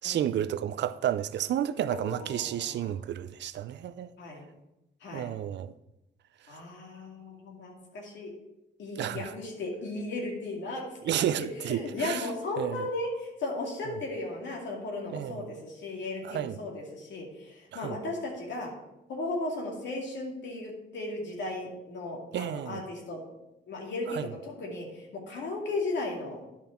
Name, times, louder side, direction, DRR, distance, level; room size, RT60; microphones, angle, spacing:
voice 1, 0.0-4.1 5.1-5.7 9.0-9.3 11.0-12.3 12.6-12.9 13.9-14.0 15.1-15.5 16.2-16.6 17.7-17.9 22.3-22.8 24.1-24.3, right 11 dB, 60° right, 0.5 m, -31 dB
voice 2, 1.9-2.9 4.2-4.4 5.0-5.3 6.5-8.3 8.8-10.8 11.2-11.3 11.6-18.7 19.1-23.2 23.7-26.4, left 2 dB, 65° left, 2.3 m, -36 dB
10.5 x 5.6 x 4.4 m
cardioid pair, 90°, 20 cm